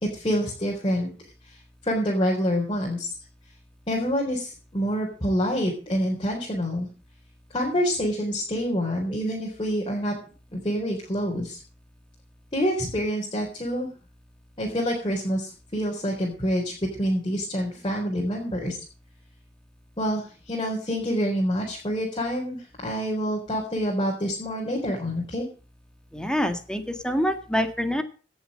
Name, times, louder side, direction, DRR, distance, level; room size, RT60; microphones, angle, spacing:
voice 1, 0.0-1.1 1.5-1.6 1.8-3.1 3.9-6.9 7.5-10.1 10.5-11.6 12.5-13.9 14.6-16.7 17.0-18.8 20.0-25.5, equal, 30° left, -3 dB, 3.9 m, -27 dB
voice 2, 26.1-28.0, equal, 5° left, 7 dB, 1.8 m, -26 dB
17.5 x 7.2 x 6.5 m, 0.37 s
head